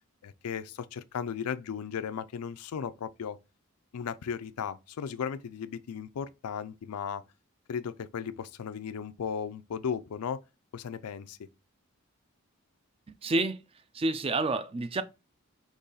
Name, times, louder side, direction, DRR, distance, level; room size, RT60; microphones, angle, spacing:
voice 1, 0.2-3.4 3.9-7.2 7.7-10.4 10.7-11.4, left 7 dB, 85° left, 0.4 m, -36 dB
voice 2, 13.2-13.6 13.9-15.0, right 2 dB, 25° right, 0.3 m, -28 dB
4.0 x 3.0 x 3.9 m
head